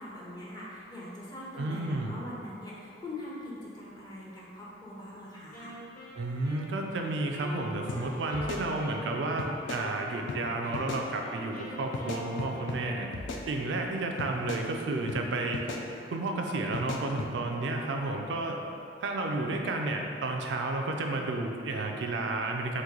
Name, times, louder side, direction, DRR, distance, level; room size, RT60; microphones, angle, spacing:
voice 1, 0.0-5.8, left 1 dB, 20° left, -6 dB, 0.6 m, -42 dB
voice 2, 1.6-2.1 6.2-13.1 13.5-15.7 16.1-18.6 19.0-22.8, right 2 dB, 70° right, 2 dB, 0.4 m, -32 dB
Wind instrument woodwind instrument, 5.5-10.3 10.6-13.2, equal, 45° left, 1.1 m, -45 dB
sound 1, 7.9-8.0 8.3-9.1 9.4-9.8 10.3-10.4 10.7-11.0 11.9-12.8 13.1-13.9 14.2-14.6 15.1-15.2 15.5-15.8 16.7-17.3, left 3 dB, 75° left, 0.3 m, -37 dB
3.0 x 2.5 x 3.7 m, 2.6 s
head